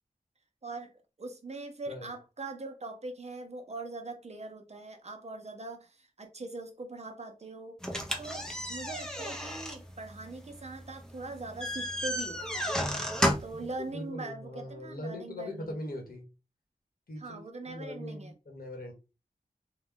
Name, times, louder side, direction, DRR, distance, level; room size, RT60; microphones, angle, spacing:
voice 1, 0.6-7.8 8.2-12.4 13.4-15.8 17.2-18.3, right 2 dB, 45° right, 0.7 m, -42 dB
sound 1, 7.8-13.7, equal, 5° left, 0.6 m, -33 dB
voice 2, 13.6-16.3 17.1-18.9, left 1 dB, 80° left, 1.2 m, -41 dB
3.0 x 2.2 x 3.6 m
wide cardioid pair, 90°, 15 cm